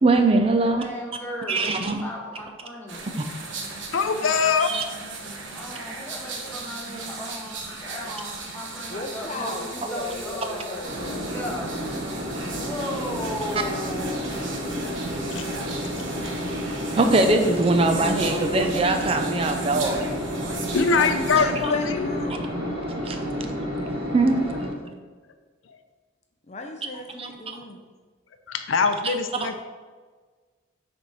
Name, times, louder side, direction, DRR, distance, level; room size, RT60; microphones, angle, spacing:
voice 1, 0.0-0.8 1.5-2.0 4.6-4.8 17.0-20.1 23.0-23.2 24.1-24.4 27.2-27.6 29.0-29.1 29.4-29.5, right 2 dB, 30° right, 5 dB, 0.5 m, -21 dB
voice 2, 0.6-3.3 5.5-10.7 11.3-11.8 12.6-14.2, left 1 dB, 10° left, -3 dB, 1.3 m, -35 dB
sound 1, 2.9-21.4, right 3 dB, 75° right, 1.1 m, -37 dB
voice 3, 3.9-4.7 15.3-15.4 20.7-22.1 28.5-29.6, left 5 dB, 90° left, 8 dB, 0.6 m, -22 dB
voice 4, 8.9-12.2 17.7-19.2 20.9-22.7 26.5-27.8, left 2 dB, 35° left, 4 dB, 0.6 m, -36 dB
sound 2, 10.8-24.7, equal, 55° right, 2.0 m, -31 dB
6.6 x 4.4 x 4.7 m, 1.5 s
head